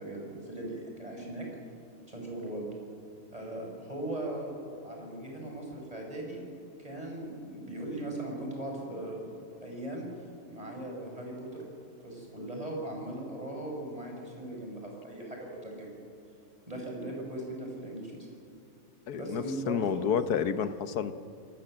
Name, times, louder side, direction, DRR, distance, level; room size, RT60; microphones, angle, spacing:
voice 1, 0.0-1.5 2.1-2.7 3.3-6.4 6.8-9.3 9.6-10.1 10.5-11.6 12.0-16.0 16.7-18.3 19.1-20.1, right 1 dB, 20° right, 0 dB, 5.7 m, -39 dB
voice 2, 19.1-21.1, left 7 dB, 65° left, 11 dB, 1.4 m, -30 dB
27.0 x 18.5 x 7.6 m, 2.5 s
omnidirectional pair, 1.8 m